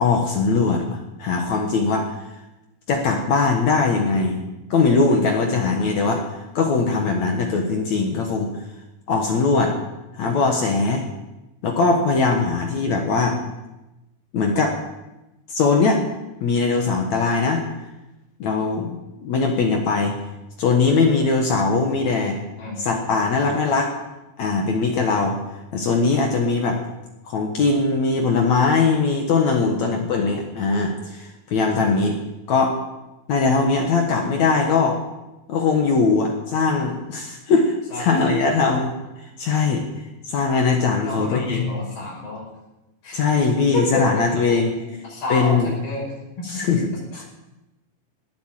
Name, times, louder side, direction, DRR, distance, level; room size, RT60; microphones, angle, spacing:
voice 1, 0.0-2.1 2.9-4.4 4.7-8.5 9.1-9.8 10.1-11.0 11.6-13.4 14.3-14.8 15.5-16.0 16.4-17.6 18.4-19.0 19.2-20.2 20.6-22.4 22.8-23.9 24.4-25.4 25.7-26.8 27.3-32.2 32.5-32.8 33.3-35.0 35.5-38.9 39.4-39.8 40.3-41.7 43.1-44.7 45.3-45.7 46.4-47.2, left 4 dB, 60° left, 2 dB, 2.3 m, -20 dB
voice 2, 29.7-30.1 37.9-38.3 41.0-42.4 43.0-43.2 43.7-44.6 44.8-46.1, left 2 dB, 85° left, -4 dB, 7.9 m, -30 dB
18.5 x 8.5 x 7.5 m, 1.0 s
omnidirectional pair, 4.3 m